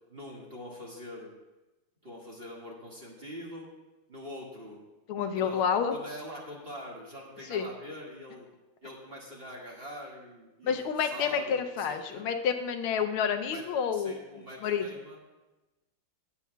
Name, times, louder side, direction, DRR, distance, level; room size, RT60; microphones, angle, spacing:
voice 1, 0.1-1.3 2.0-3.7 4.1-4.8 5.3-5.6 5.9-8.5 8.8-12.3 13.4-13.6 13.9-15.2, equal, 30° right, -4 dB, 1.7 m, -44 dB
voice 2, 5.1-5.9 7.5-7.7 10.6-14.1 14.6-14.9, left 7 dB, 80° left, 7 dB, 1.5 m, -29 dB
18.0 x 8.2 x 2.3 m, 1.1 s
omnidirectional pair, 2.4 m